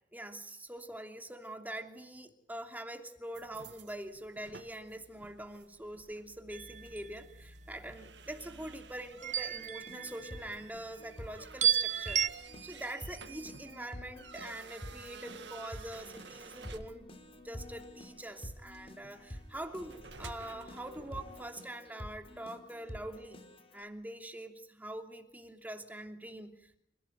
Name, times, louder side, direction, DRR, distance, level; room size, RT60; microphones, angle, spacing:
voice 1, 0.1-12.2 12.6-17.1 17.4-23.4 23.7-26.8, right 1 dB, 10° right, 5 dB, 2.9 m, -44 dB
sound 1, 3.3-21.5, right 4 dB, 75° right, 1.9 m, -53 dB
sound 2, 6.5-7.1 9.2-10.6 11.6-12.3, right 8 dB, 45° right, 1.1 m, -31 dB
Keyboard (musical), 9.5-23.8, left 1 dB, 35° left, 3.8 m, -49 dB
29.0 x 17.0 x 9.4 m, 0.75 s
head